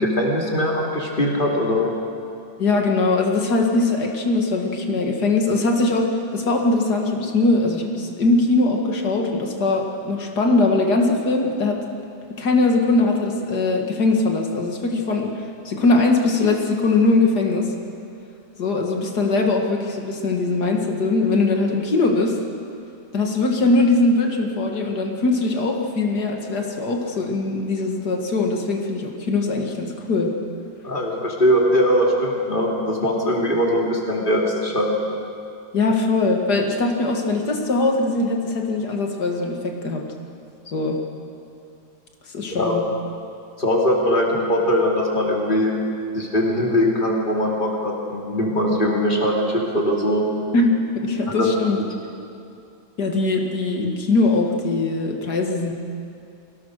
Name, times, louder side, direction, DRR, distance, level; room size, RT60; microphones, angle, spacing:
voice 1, 0.0-1.9 30.8-34.9 42.5-42.8 43.6-45.7 46.1-50.2 51.4-51.7, equal, 30° left, -2 dB, 3.1 m, -21 dB
voice 2, 2.6-11.8 12.4-15.3 15.6-17.7 18.6-22.4 23.1-30.3 35.7-40.0 40.7-41.0 42.3-42.8 50.5-51.8 53.0-55.7, left 3 dB, 75° left, 2 dB, 2.6 m, -21 dB
23.5 x 17.0 x 6.6 m, 2.5 s
omnidirectional pair, 1.7 m